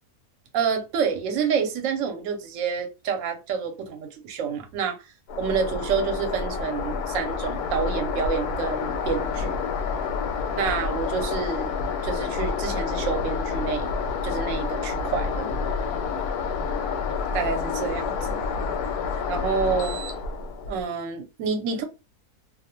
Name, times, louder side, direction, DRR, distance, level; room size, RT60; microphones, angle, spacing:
voice 1, 0.5-5.0 5.4-9.6 10.6-11.7 12.0-13.9 14.2-15.5 17.3-18.4 19.3-20.0 20.7-21.8, right 6 dB, 65° right, 0.9 m, -28 dB
sound 1, 5.3-20.8, left 5 dB, 85° left, 1.1 m, -28 dB
2.5 x 2.0 x 2.8 m
omnidirectional pair, 1.6 m